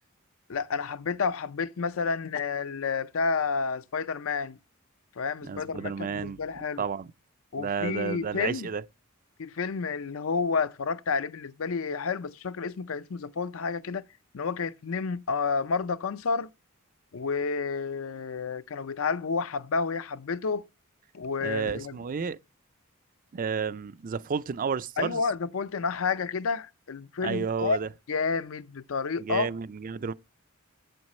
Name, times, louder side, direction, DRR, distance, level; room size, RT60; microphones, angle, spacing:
voice 1, 0.5-4.6 5.2-6.8 7.5-8.7 9.4-14.0 14.3-16.5 17.1-20.7 21.1-22.0 25.0-27.8 28.1-29.5, left 5 dB, 70° left, 0.5 m, -30 dB
voice 2, 5.4-6.4 6.8-7.1 7.6-8.8 21.4-22.4 23.3-25.2 27.2-27.9 29.2-30.1, right 5 dB, 40° right, 0.4 m, -31 dB
8.1 x 7.8 x 4.2 m
head